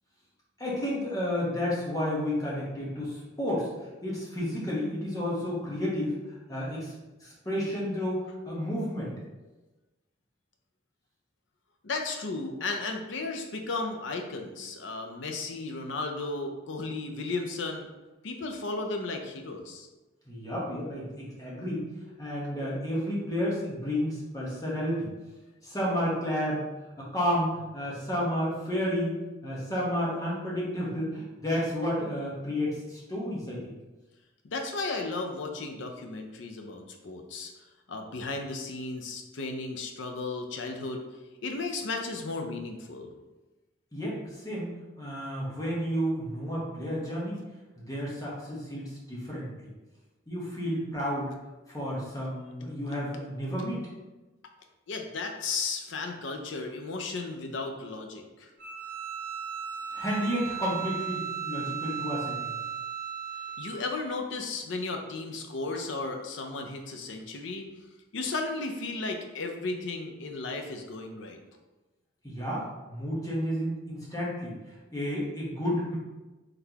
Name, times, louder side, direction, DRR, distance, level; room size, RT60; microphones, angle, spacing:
voice 1, 0.6-3.7 4.0-6.1 6.5-6.9 7.2-9.1 20.3-21.9 22.2-25.1 25.6-26.6 27.1-29.1 29.4-33.6 43.9-44.7 45.0-47.4 47.8-49.5 50.3-51.3 51.7-53.9 59.9-62.5 72.2-74.5 74.9-76.0, equal, 20° left, -6 dB, 1.0 m, -31 dB
voice 2, 11.8-17.9 18.2-19.9 34.4-37.5 37.9-41.0 41.4-43.1 54.9-58.5 63.6-67.6 68.1-71.4, left 3 dB, 75° left, 4 dB, 0.5 m, -34 dB
Bowed string instrument, 58.6-63.8, right 8 dB, 50° right, 0.9 m, -36 dB
3.9 x 3.2 x 2.8 m, 1.1 s
head